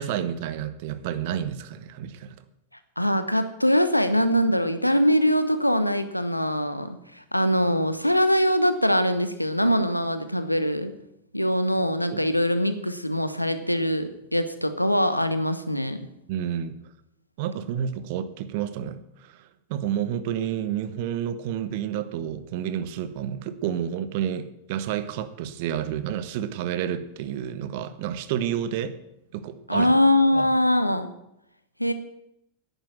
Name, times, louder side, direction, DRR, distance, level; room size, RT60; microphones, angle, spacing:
voice 1, 0.0-2.4 12.1-12.2 16.3-16.7 17.4-29.0 29.3-29.9 30.3-30.5, right 9 dB, 50° right, 13 dB, 1.1 m, -30 dB
voice 2, 3.0-10.9 11.3-16.0 29.7-31.1 31.8-31.9, equal, 90° left, 10 dB, 1.0 m, -23 dB
10.5 x 9.3 x 7.4 m, 0.81 s
figure-of-eight pair, 90°, 0 cm